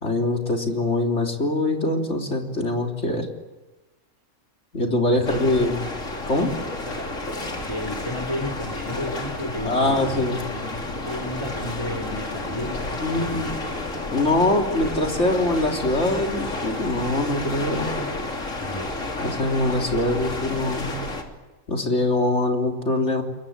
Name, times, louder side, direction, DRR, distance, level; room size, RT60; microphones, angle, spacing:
voice 1, 0.0-3.3 4.7-5.8 6.3-6.5 9.6-10.4 13.0-13.6 14.1-18.0 19.2-20.9 21.7-23.2, left 2 dB, 65° left, 2 dB, 3.8 m, -23 dB
sound 1, 5.2-21.2, left 2 dB, 80° left, 3.6 m, -31 dB
voice 2, 5.3-5.9 6.9-7.0 7.7-13.5 18.6-19.0, left 1 dB, 20° left, 1 dB, 3.6 m, -33 dB
29.0 x 22.5 x 9.0 m, 1.1 s
omnidirectional pair, 1.3 m